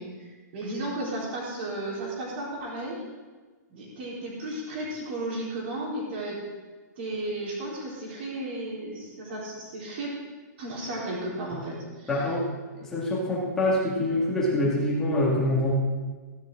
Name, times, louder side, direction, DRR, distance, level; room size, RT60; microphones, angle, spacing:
voice 1, 0.0-3.0 3.7-6.4 7.0-10.1 10.6-12.3 12.7-12.8, right 1 dB, 35° right, -4 dB, 4.0 m, -34 dB
voice 2, 12.1-12.5 12.8-15.7, left 1 dB, 5° left, -6 dB, 2.1 m, -25 dB
14.5 x 11.5 x 3.8 m, 1.4 s
hypercardioid pair, 180°, 10 cm